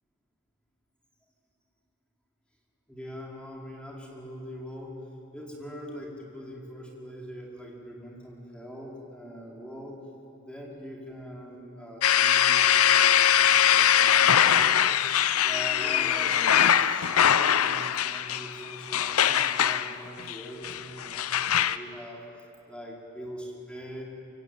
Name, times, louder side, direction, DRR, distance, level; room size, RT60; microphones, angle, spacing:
voice 1, 2.9-5.0 5.3-10.0 10.4-15.0 15.4-24.0, equal, 5° left, -2 dB, 4.5 m, -42 dB
sound 1, 12.0-21.8, left 9 dB, 85° left, 0.7 m, -22 dB
25.0 x 23.5 x 9.3 m, 2.8 s
head